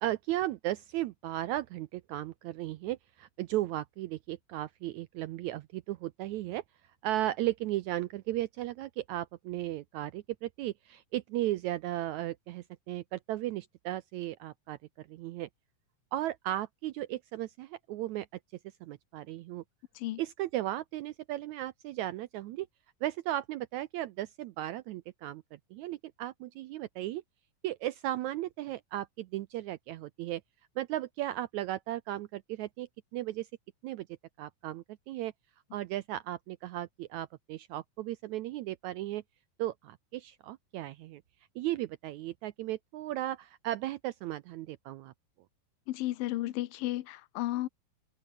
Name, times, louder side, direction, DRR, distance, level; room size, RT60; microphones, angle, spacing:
voice 1, 0.0-6.6 7.0-15.5 16.1-18.3 18.8-19.6 20.2-22.7 23.0-25.4 25.7-27.2 27.6-30.4 30.8-33.5 33.8-34.1 34.4-35.3 35.7-39.2 39.6-41.2 41.5-45.1, right 14 dB, 80° right, 1.7 m, -35 dB
voice 2, 45.9-47.7, left 16 dB, 85° left, 2.7 m, -33 dB
open air
omnidirectional pair, 4.0 m